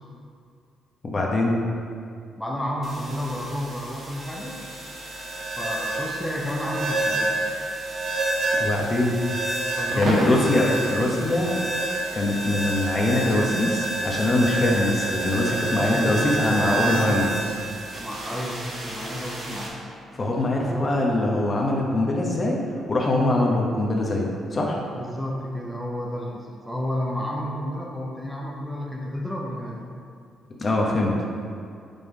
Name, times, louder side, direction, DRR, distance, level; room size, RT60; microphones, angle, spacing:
voice 1, 1.0-1.6 8.6-9.2 10.0-10.6 10.9-11.5 12.1-17.3 20.1-22.6 22.9-24.8 30.6-31.1, left 2 dB, 35° left, -2 dB, 1.0 m, -23 dB
voice 2, 2.4-4.6 5.6-7.4 9.8-10.7 15.7-17.2 18.0-19.8 20.6-21.0 24.9-29.9, equal, ahead, -3 dB, 0.8 m, -31 dB
sound 1, 2.8-19.7, right 2 dB, 50° right, 1.3 m, -29 dB
5.3 x 3.8 x 4.8 m, 2.4 s
cardioid pair, 90°, 0 cm